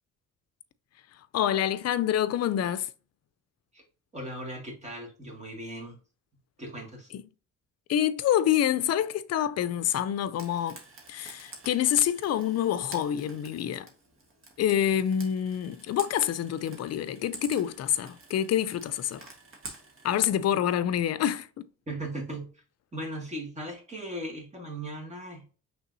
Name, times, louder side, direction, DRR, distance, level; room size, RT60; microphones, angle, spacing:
voice 1, 1.3-2.9 7.1-7.2 7.9-10.8 11.1-13.9 14.6-19.3 20.0-21.7, left 10 dB, 55° left, 0.5 m, -27 dB
voice 2, 4.1-6.0 6.6-7.1 21.9-22.6 22.9-25.5, right 1 dB, 25° right, 2.0 m, -38 dB
Frying (food), 10.4-20.3, right 3 dB, 45° right, 1.5 m, -48 dB
5.6 x 3.4 x 2.7 m
cardioid pair, 90°, 30 cm